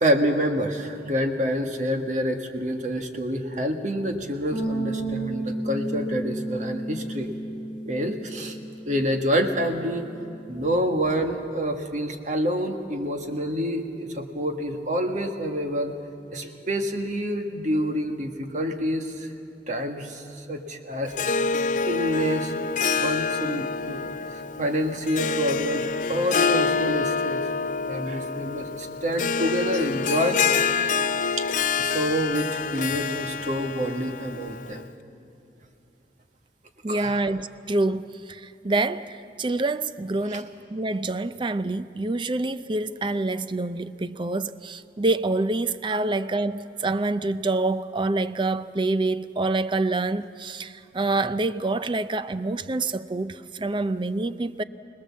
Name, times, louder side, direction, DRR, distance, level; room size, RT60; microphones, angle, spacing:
voice 1, 0.0-7.3 7.9-8.6 8.8-10.1 10.5-15.9 16.3-19.3 19.7-21.1 21.8-22.5 23.0-27.5 27.9-30.6 31.4-31.5 31.8-34.9 36.9-37.2 40.3-40.4, equal, 40° right, 1.6 m, -27 dB
Bass guitar, 4.5-10.8, right 2 dB, 90° right, 6.4 m, -33 dB
Harp, 21.1-34.8, left 5 dB, 45° left, 0.5 m, -27 dB
voice 2, 36.8-54.6, right 2 dB, 25° right, 0.5 m, -27 dB
25.5 x 19.5 x 7.3 m
head